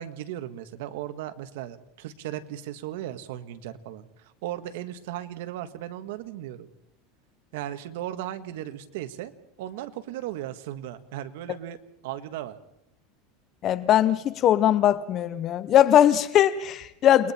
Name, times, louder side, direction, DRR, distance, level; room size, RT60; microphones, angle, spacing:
voice 1, 0.0-6.7 7.5-9.3 9.6-12.6, right 12 dB, 75° right, 10 dB, 1.6 m, -36 dB
voice 2, 13.6-17.3, left 11 dB, 35° left, 15 dB, 0.8 m, -20 dB
29.0 x 21.0 x 4.4 m, 0.80 s
supercardioid pair, 155°, 0 cm